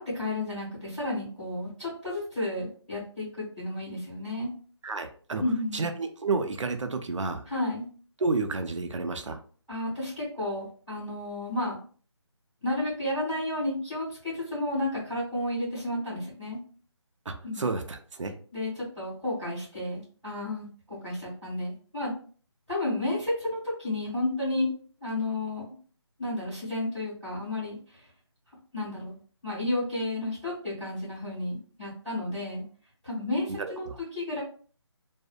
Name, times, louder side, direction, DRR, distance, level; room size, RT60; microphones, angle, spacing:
voice 1, 0.0-4.5 5.4-5.9 7.5-7.9 9.7-11.7 12.6-16.6 17.4-17.7 18.5-22.1 22.7-24.7 25.0-25.6 26.2-28.0 28.7-29.1 29.4-32.6 33.0-34.4, left 1 dB, ahead, -15 dB, 0.9 m, -32 dB
voice 2, 4.8-5.4 5.7-7.4 8.2-9.4 17.3-18.3 33.5-34.0, right 3 dB, 85° right, 6 dB, 0.5 m, -31 dB
2.6 x 2.0 x 2.4 m, 0.43 s
figure-of-eight pair, 180°, 15 cm